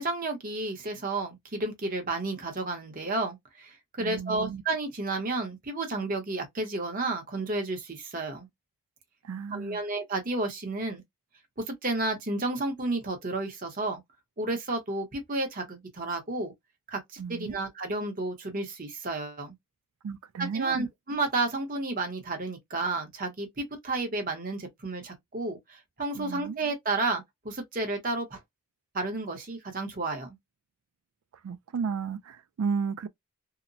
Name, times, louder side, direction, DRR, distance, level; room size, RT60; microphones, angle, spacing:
voice 1, 0.0-8.5 9.5-11.0 11.7-14.0 14.4-16.5 16.9-19.5 20.4-28.4 28.9-30.4, right 2 dB, 40° right, 0.8 m, -32 dB
voice 2, 4.0-4.6 9.2-9.8 17.2-17.6 20.0-20.9 26.2-26.6 31.4-33.1, right 6 dB, 80° right, 0.3 m, -33 dB
2.8 x 2.1 x 2.5 m
head